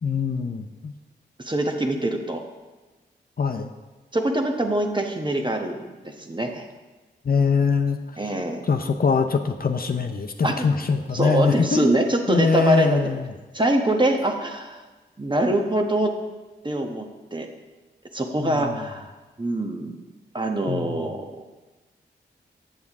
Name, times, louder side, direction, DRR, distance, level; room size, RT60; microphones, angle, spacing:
voice 1, 0.0-0.9 3.4-3.7 7.2-8.0 8.6-12.0 12.3-13.3 18.4-18.9 20.7-21.0, left 5 dB, 50° left, 5 dB, 0.7 m, -23 dB
voice 2, 1.4-2.4 4.1-6.6 8.2-8.6 10.4-10.7 11.1-13.1 13.5-14.8 15.2-16.1 16.6-17.0 17.3-17.5 18.1-19.1 19.4-20.0 20.3-21.4, right 1 dB, 25° right, 3 dB, 1.2 m, -24 dB
8.5 x 7.1 x 3.6 m, 1.2 s
cardioid pair, 40°, 20 cm